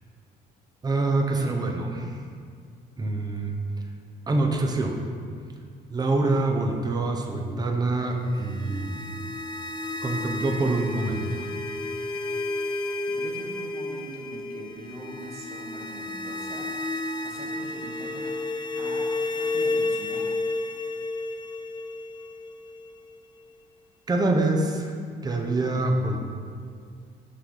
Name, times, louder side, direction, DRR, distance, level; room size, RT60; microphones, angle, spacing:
voice 1, 0.8-2.2 3.0-3.6 4.3-5.0 5.9-9.1 10.0-11.5 24.1-24.9 25.2-26.2, right 2 dB, 25° right, 2 dB, 0.7 m, -25 dB
sound 1, 8.2-23.2, left 2 dB, 25° left, 0.4 m, -32 dB
voice 2, 13.2-16.7 17.2-18.3 18.7-20.3, right 1 dB, 40° right, -1 dB, 1.1 m, -42 dB
5.9 x 3.3 x 5.5 m, 2.1 s
cardioid pair, 110°, 17 cm